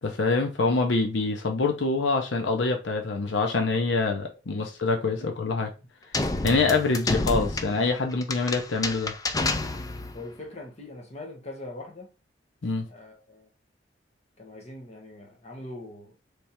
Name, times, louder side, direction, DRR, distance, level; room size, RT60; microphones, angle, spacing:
voice 1, 0.0-5.7 6.4-9.1 12.6-12.9, left 3 dB, 85° left, 0.7 m, -25 dB
sound 1, 6.1-10.2, left 2 dB, 20° left, 0.4 m, -29 dB
voice 2, 10.1-12.1 12.9-13.5 14.4-16.1, left 2 dB, 35° left, 1.2 m, -42 dB
3.4 x 3.3 x 4.3 m
head